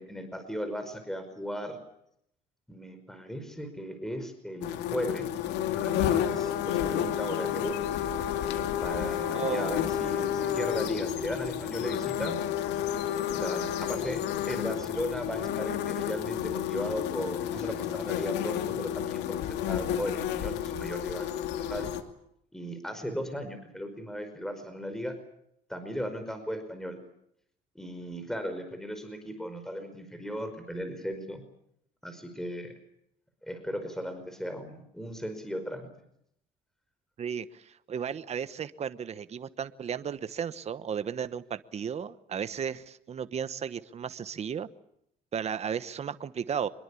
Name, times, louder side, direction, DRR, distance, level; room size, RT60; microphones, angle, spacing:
voice 1, 0.0-1.8 2.7-5.3 5.7-7.8 8.8-12.4 13.4-21.9 22.5-25.1 25.7-27.0 27.7-31.4 32.0-32.7 33.4-35.9, equal, 5° left, 8 dB, 5.1 m, -36 dB
sound 1, 4.6-22.0, left 10 dB, 85° left, 2.6 m, -31 dB
voice 2, 9.3-9.8 37.2-44.7 45.3-46.7, right 7 dB, 40° right, 13 dB, 1.2 m, -34 dB
25.5 x 22.5 x 8.5 m, 0.75 s
cardioid pair, 110°, 17 cm